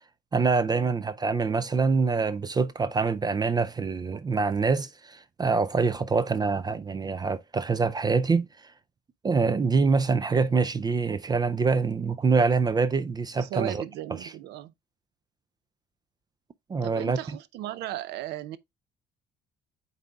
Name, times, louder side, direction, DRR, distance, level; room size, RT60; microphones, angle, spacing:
voice 1, 0.3-8.5 9.2-13.8 14.2-14.3 16.7-17.2, right 4 dB, 25° right, 0.4 m, -25 dB
voice 2, 13.4-14.7 16.8-18.6, right 13 dB, 80° right, 0.6 m, -36 dB
11.5 x 4.1 x 2.3 m
cardioid pair, 110°, 17 cm